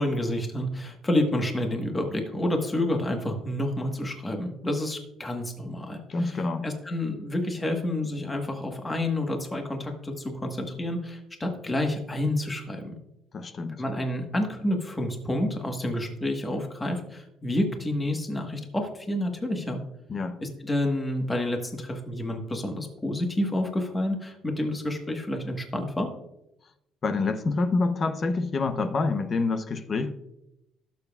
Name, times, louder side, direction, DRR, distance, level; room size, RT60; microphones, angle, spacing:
voice 1, 0.0-12.9 13.8-19.8 20.4-26.1, left 1 dB, 10° left, 3 dB, 1.3 m, -29 dB
voice 2, 6.1-6.7 13.3-13.8 20.1-20.4 27.0-30.2, left 3 dB, 25° left, 9 dB, 0.7 m, -27 dB
17.5 x 7.0 x 2.4 m, 0.84 s
cardioid pair, 170°, 0 cm